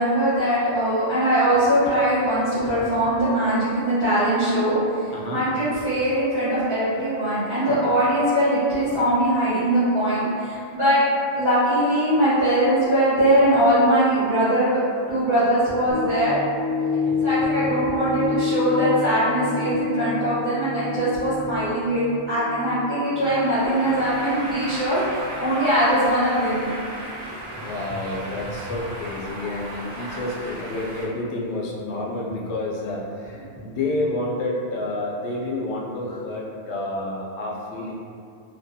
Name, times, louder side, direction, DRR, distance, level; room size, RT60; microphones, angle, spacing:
voice 1, 0.0-11.0 11.4-14.8 15.1-16.4 17.2-25.0 25.4-26.7, right 1 dB, 30° left, -16 dB, 0.9 m, -21 dB
voice 2, 5.1-5.4 7.8-7.9 17.0-17.2 27.6-37.9, left 2 dB, 80° left, -3 dB, 0.9 m, -29 dB
sound 1, 15.9-24.3 24.8-24.9, left 4 dB, 5° right, 1.1 m, -28 dB
sound 2, 23.2-31.1, right 1 dB, 70° right, 0.8 m, -35 dB
2.8 x 2.2 x 2.6 m, 2.4 s
omnidirectional pair, 1.1 m